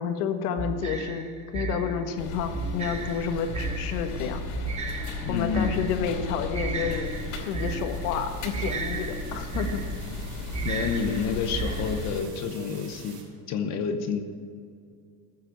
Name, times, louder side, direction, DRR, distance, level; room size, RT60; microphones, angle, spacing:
voice 1, 0.0-4.4 5.3-7.1 7.5-9.8, left 7 dB, 70° left, 6 dB, 1.6 m, -30 dB
sound 1, 0.6-12.3, right 3 dB, 15° right, 0.8 m, -34 dB
sound 2, 2.2-12.2, left 3 dB, 50° left, 2.7 m, -36 dB
voice 2, 5.2-5.8 10.6-13.2 13.5-14.2, left 6 dB, 35° left, 7 dB, 0.9 m, -29 dB
sound 3, 7.0-13.2, right 6 dB, 85° right, 4.2 m, -50 dB
15.0 x 7.5 x 7.2 m, 2.2 s
cardioid pair, 165°, 48 cm